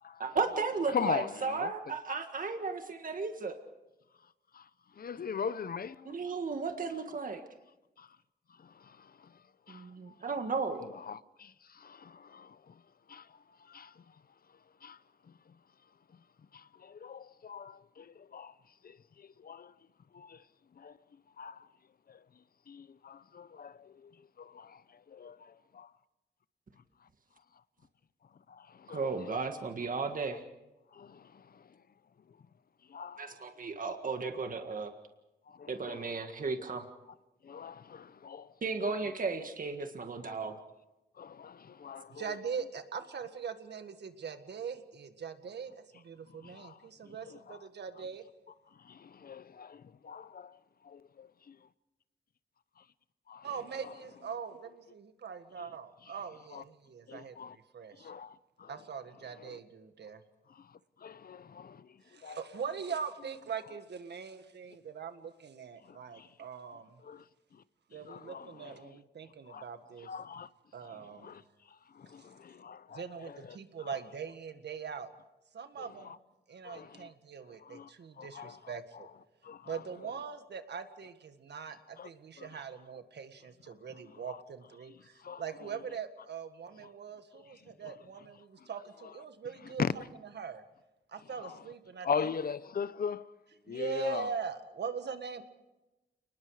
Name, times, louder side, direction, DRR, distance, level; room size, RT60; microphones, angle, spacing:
voice 1, 0.2-3.6 6.0-7.4 9.7-10.8 28.9-30.4 33.2-34.9 35.7-36.8 38.6-40.5, right 4 dB, 55° right, 1.8 m, -34 dB
voice 2, 0.9-1.7 4.5-6.2 8.0-8.1 8.6-9.4 9.7-10.1 10.8-12.8 13.1-14.0 14.8-15.0 15.3-15.5 16.5-18.5 18.8-19.7 20.1-20.4 20.8-21.0 21.4-21.7 22.1-22.2 22.7-25.9 28.5-29.4 30.9-31.8 32.9-33.4 33.9-34.0 35.5-36.0 37.4-38.5 38.8-39.0 40.2-40.3 41.2-42.3 46.4-46.8 47.1-47.6 48.8-50.6 50.8-51.3 53.3-53.5 53.8-53.9 55.6-55.7 56.5-56.6 57.1-57.6 58.0-58.7 59.4-59.6 60.5-62.4 65.8-66.3 67.0-67.2 67.5-67.6 68.0-68.8 69.5-69.6 70.0-70.5 71.2-71.4 71.9-73.6 73.8-74.0 75.8-76.2 76.6-77.1 77.6-77.9 78.2-78.7 79.4-79.8 82.0-82.1 82.4-82.6 84.1-84.4 85.2-85.4 87.5-87.9 88.6-88.7 89.8-90.1 91.4-91.6 92.0-93.3 93.7-94.3, left 6 dB, 60° left, 0.8 m, -41 dB
voice 3, 42.1-48.2 53.4-58.1 58.7-60.2 62.0-67.0 67.9-70.1 70.7-71.4 72.9-75.1 75.5-76.2 76.5-79.1 79.6-89.8 90.3-90.6 91.1-92.3 93.7-95.4, right 6 dB, 85° right, 1.7 m, -42 dB
29.5 x 20.0 x 4.9 m
wide cardioid pair, 100°, 17 cm